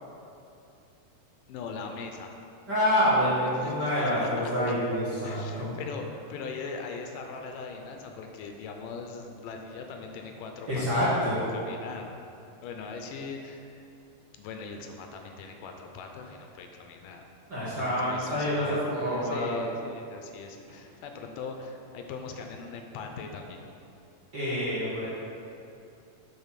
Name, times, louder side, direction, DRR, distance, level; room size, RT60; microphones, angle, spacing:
voice 1, 1.5-2.4 3.6-4.5 5.2-12.3 12.6-13.9 14.3-17.2 17.7-23.6, left 4 dB, 85° left, 3 dB, 2.2 m, -40 dB
voice 2, 2.7-5.7 10.7-11.4 17.5-19.6 24.3-25.1, equal, 40° right, -11 dB, 1.7 m, -27 dB
8.8 x 3.7 x 5.7 m, 2.6 s
omnidirectional pair, 3.8 m